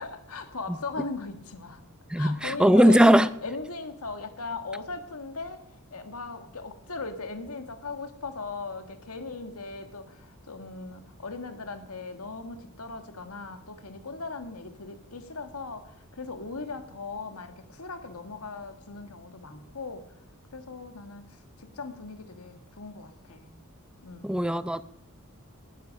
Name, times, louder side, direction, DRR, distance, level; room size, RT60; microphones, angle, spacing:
voice 1, 0.0-1.8 2.1-20.1 20.5-23.6 24.0-24.5, left 3 dB, 85° left, 8 dB, 1.8 m, -39 dB
voice 2, 2.1-3.3 24.2-24.8, equal, 5° right, 13 dB, 0.5 m, -19 dB
19.0 x 12.0 x 5.3 m, 0.75 s
head